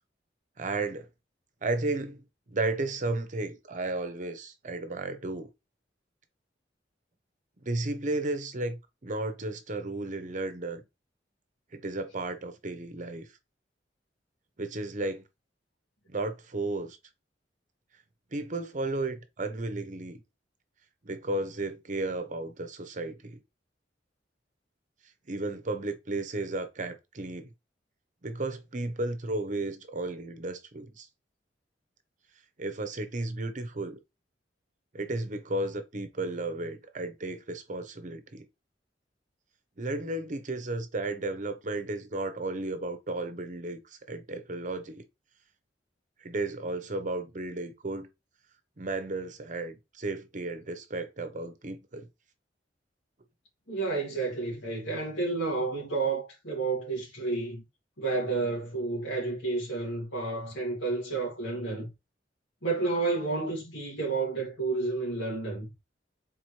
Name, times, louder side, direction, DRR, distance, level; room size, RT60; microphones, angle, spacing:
voice 1, 0.6-1.1 1.6-5.5 7.6-10.8 11.7-13.3 14.6-15.2 16.1-17.0 18.3-20.2 21.0-23.4 25.3-27.5 28.2-31.1 32.6-34.0 34.9-38.5 39.8-45.0 46.2-48.1 48.8-52.1, right 2 dB, 45° right, 0.8 m, -34 dB
voice 2, 53.7-57.6 58.0-61.9 62.6-65.7, right 3 dB, 85° left, 2.2 m, -30 dB
4.2 x 4.1 x 3.1 m
head